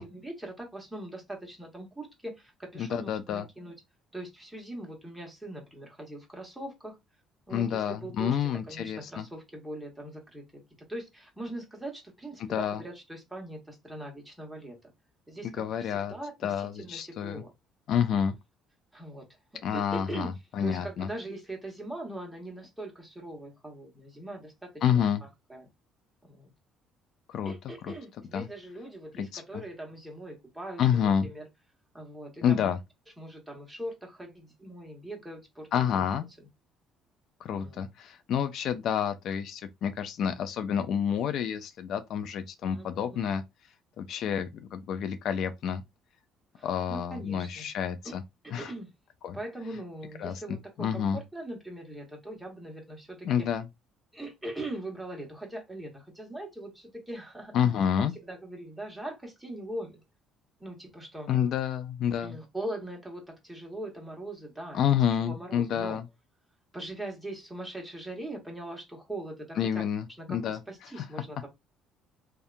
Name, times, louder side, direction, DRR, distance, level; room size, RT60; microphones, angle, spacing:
voice 1, 0.0-3.7 4.1-7.0 7.5-10.4 10.9-14.9 15.3-17.5 18.9-19.2 19.5-20.3 20.6-25.7 26.2-26.5 27.4-31.5 31.9-32.7 33.2-36.0 36.4-36.5 37.6-37.8 42.6-43.2 46.5-47.7 48.0-48.2 48.4-48.9 49.3-53.5 54.1-57.5 58.1-59.9 60.6-61.3 62.2-64.8 65.1-66.0 66.7-69.8 70.2-71.5, right 1 dB, 5° right, 1.2 m, -41 dB
voice 2, 2.8-3.4 7.5-9.3 12.4-12.8 15.4-16.1 16.4-17.4 17.9-18.4 19.6-21.1 24.8-25.2 27.3-27.5 27.8-27.9 28.3-28.5 29.2-29.6 30.8-31.3 32.4-32.8 35.7-36.3 37.4-43.4 44.0-45.8 46.6-48.2 48.5-48.7 49.2-49.4 50.2-51.2 53.2-53.6 57.5-58.1 61.3-62.4 64.7-66.0 69.6-70.6 71.0-71.1, left 8 dB, 65° left, 0.3 m, -29 dB
2.7 x 2.2 x 2.4 m
cardioid pair, 100°, 0 cm